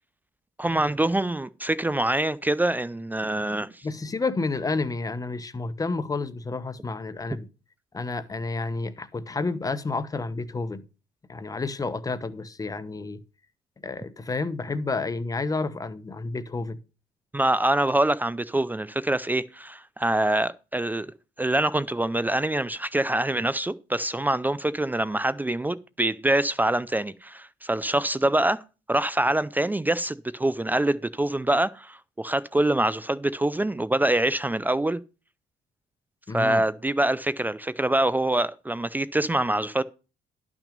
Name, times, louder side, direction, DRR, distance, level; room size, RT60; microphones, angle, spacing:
voice 1, 0.6-3.8 17.3-21.1 21.4-28.6 28.9-35.0 36.3-39.8, right 1 dB, 10° right, 0.4 m, -25 dB
voice 2, 3.8-7.5 7.9-10.8 11.3-13.2 13.8-16.8 36.3-36.6, left 3 dB, 20° left, 1.0 m, -30 dB
11.5 x 6.1 x 5.2 m
cardioid pair, 110°, 17 cm